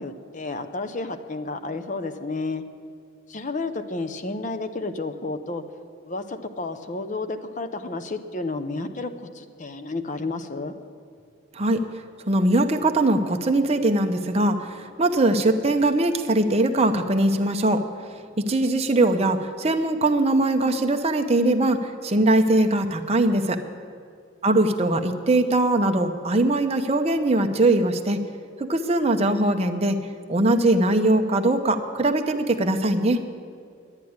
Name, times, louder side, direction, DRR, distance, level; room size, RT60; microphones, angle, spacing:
voice 1, 0.0-2.6 3.3-5.6 6.0-10.8 24.4-24.7, left 3 dB, 35° left, 9 dB, 0.7 m, -31 dB
voice 2, 12.3-14.7 15.0-17.8 18.5-23.6 24.4-28.2 28.6-30.0 30.3-33.2, right 2 dB, 30° right, 5 dB, 0.8 m, -21 dB
11.0 x 10.5 x 9.5 m, 2.3 s
head